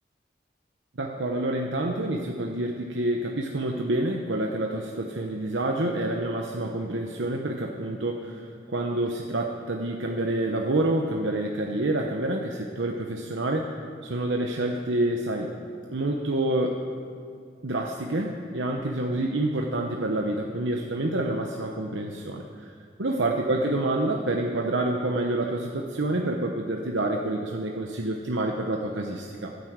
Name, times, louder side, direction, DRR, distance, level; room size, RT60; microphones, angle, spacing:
voice 1, 1.0-13.8 14.0-15.5 15.9-16.8 17.6-22.7 23.0-29.5, right 1 dB, 85° right, 2 dB, 1.0 m, -28 dB
15.0 x 9.6 x 8.0 m, 2.3 s
head